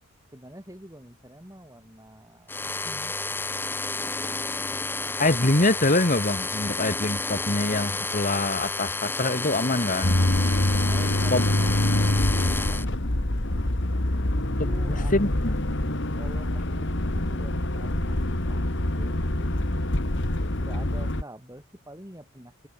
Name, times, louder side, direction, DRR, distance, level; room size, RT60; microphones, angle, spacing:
voice 1, 0.3-3.2 10.9-12.0 14.3-18.6 18.9-19.8 20.6-22.7, right 1 dB, 15° right, 7.7 m, -46 dB
sound 1, 2.5-12.9, left 3 dB, 10° left, 0.5 m, -31 dB
voice 2, 5.2-10.2 11.3-11.4 14.9-15.8, left 2 dB, 35° left, 2.0 m, -25 dB
sound 2, 10.0-21.2, left 1 dB, 55° left, 2.2 m, -25 dB
head